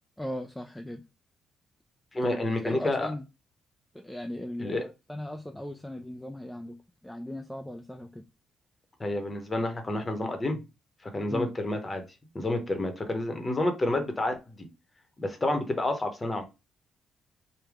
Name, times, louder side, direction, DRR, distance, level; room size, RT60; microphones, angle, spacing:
voice 1, 0.2-1.0 2.2-2.4 2.6-3.3 3.9-6.8 7.0-8.2 11.3-11.5, left 1 dB, 5° left, 0.3 m, -37 dB
voice 2, 2.1-3.1 4.6-4.8 9.0-10.6 11.1-12.0 12.3-14.7 15.2-16.4, left 1 dB, 25° left, 0.9 m, -29 dB
3.3 x 2.2 x 3.4 m
cardioid pair, 90°, 0 cm